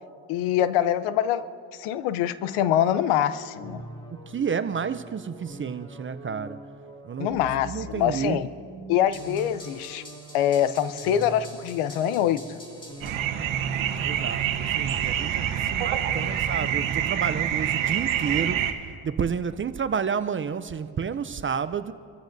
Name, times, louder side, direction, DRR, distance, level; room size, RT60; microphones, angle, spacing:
voice 1, 0.3-1.5 1.7-3.8 7.2-8.5 8.9-10.0 10.3-12.6, left 10 dB, 80° left, 0.8 m, -24 dB
sound 1, 3.5-13.2, right 1 dB, 10° left, 2.1 m, -43 dB
voice 2, 4.3-6.6 7.0-7.3 7.6-8.4 14.0-21.9, right 6 dB, 25° right, 0.4 m, -30 dB
sound 2, 13.0-18.7, right 9 dB, 75° right, 1.2 m, -26 dB
25.5 x 14.5 x 2.6 m
cardioid pair, 90°, 49 cm